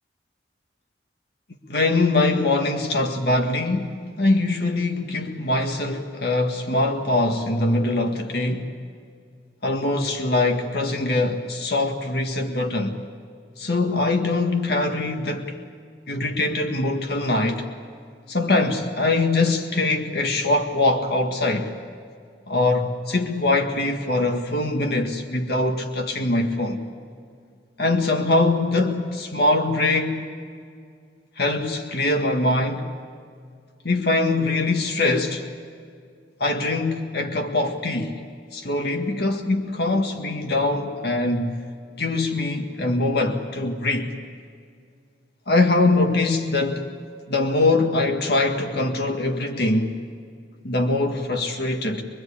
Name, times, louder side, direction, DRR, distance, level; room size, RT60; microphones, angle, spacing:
voice 1, 1.7-8.7 9.6-13.0 13.6-15.6 16.1-17.7 18.3-21.7 22.5-26.8 27.8-30.3 31.4-32.9 33.8-35.5 36.4-38.2 38.5-41.6 42.0-44.1 45.5-46.9 47.3-50.0 50.6-52.0, left 2 dB, 65° left, 1.8 m, -23 dB
24.5 x 23.0 x 8.6 m
head